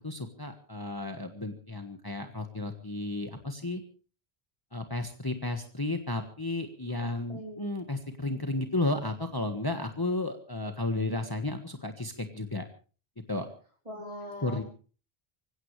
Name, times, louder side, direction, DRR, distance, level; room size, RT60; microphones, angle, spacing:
voice 1, 0.0-3.8 4.7-12.6 13.3-13.5 14.4-14.6, left 2 dB, 20° left, 5 dB, 1.5 m, -33 dB
voice 2, 6.8-7.7 13.9-14.6, equal, 35° right, 1 dB, 4.6 m, -42 dB
25.0 x 16.5 x 3.3 m, 0.39 s
omnidirectional pair, 1.1 m